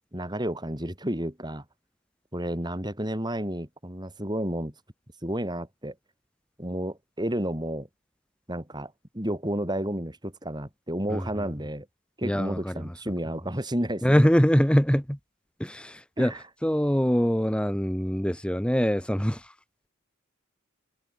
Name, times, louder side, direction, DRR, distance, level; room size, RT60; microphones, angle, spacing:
voice 1, 0.1-1.6 2.3-4.7 5.2-6.0 6.6-7.9 8.5-11.9 12.2-14.2 16.2-16.3, right 1 dB, 20° right, 5.7 m, -31 dB
voice 2, 11.1-11.4 12.2-12.9 14.0-15.2 15.6-16.3 16.6-19.5, equal, 5° left, 1.6 m, -24 dB
open air
head